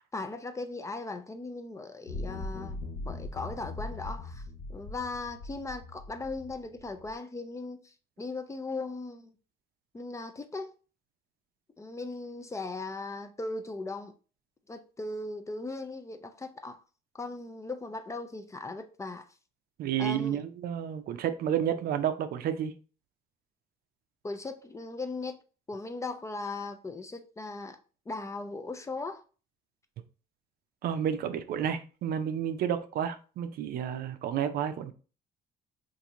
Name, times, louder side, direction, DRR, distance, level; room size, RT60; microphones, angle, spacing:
voice 1, 0.1-4.4 4.7-9.3 9.9-10.7 11.8-14.1 14.7-16.8 17.1-19.3 20.0-20.4 24.2-25.4 25.7-27.8 28.1-29.2, left 3 dB, 15° left, 0.4 m, -38 dB
sound 1, 2.1-7.1, left 2 dB, 65° left, 0.7 m, -40 dB
voice 2, 19.8-22.7 30.8-34.9, right 9 dB, 65° right, 0.5 m, -31 dB
2.9 x 2.6 x 3.7 m
cardioid pair, 110°, 17 cm